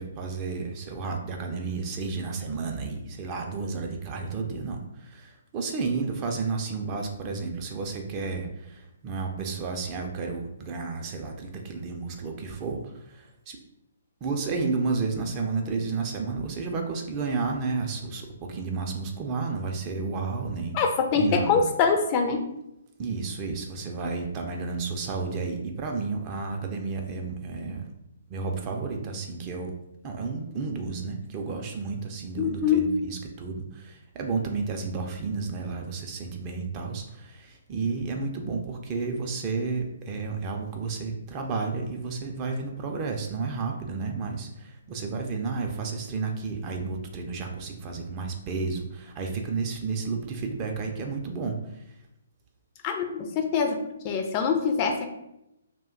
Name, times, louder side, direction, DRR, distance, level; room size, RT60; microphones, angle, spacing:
voice 1, 0.0-13.6 14.2-20.8 21.1-21.7 23.0-27.9 28.3-29.7 30.0-51.8, right 4 dB, 30° right, 3 dB, 0.4 m, -32 dB
voice 2, 20.7-22.5 32.4-32.9 52.8-53.8 54.0-55.1, left 6 dB, 35° left, 4 dB, 0.4 m, -24 dB
2.5 x 2.1 x 3.6 m, 0.85 s
figure-of-eight pair, 135°, 0 cm